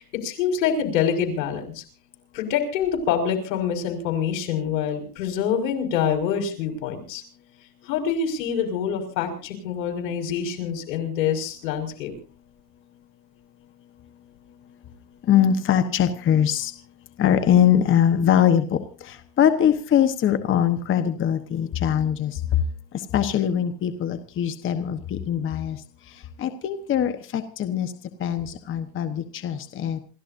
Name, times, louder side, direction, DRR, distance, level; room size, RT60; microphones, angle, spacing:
voice 1, 0.0-1.8 2.3-7.2 7.8-12.1, left 7 dB, 80° left, 4 dB, 5.6 m, -26 dB
voice 2, 15.3-16.7 17.2-18.8 19.1-22.3 23.1-25.8 26.4-27.9 28.2-30.0, left 9 dB, 25° left, 9 dB, 1.2 m, -22 dB
28.0 x 15.0 x 2.7 m, 0.36 s
supercardioid pair, 145°, 49 cm